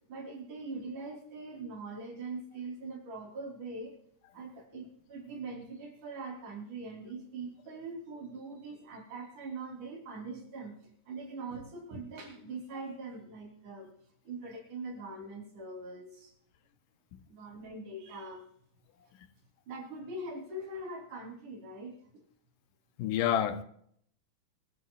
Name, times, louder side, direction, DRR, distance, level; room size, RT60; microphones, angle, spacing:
voice 1, 0.1-4.0 4.3-10.7 11.1-13.9 14.2-16.3 17.3-18.4 19.7-22.2, right 3 dB, 65° right, 4.9 m, -42 dB
voice 2, 23.0-23.6, left 10 dB, 80° left, 2.4 m, -29 dB
24.0 x 12.5 x 2.4 m
omnidirectional pair, 3.9 m